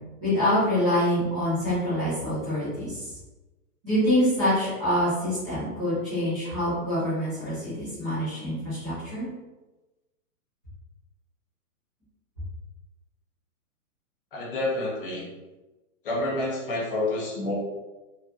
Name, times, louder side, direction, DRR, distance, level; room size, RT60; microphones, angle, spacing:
voice 1, 0.2-3.1 3.8-9.2, equal, 5° right, -17 dB, 0.6 m, -25 dB
voice 2, 14.3-15.3 16.0-17.5, left 2 dB, 35° left, -5 dB, 1.2 m, -28 dB
4.4 x 3.0 x 2.6 m, 1.1 s
hypercardioid pair, 180°, 45 cm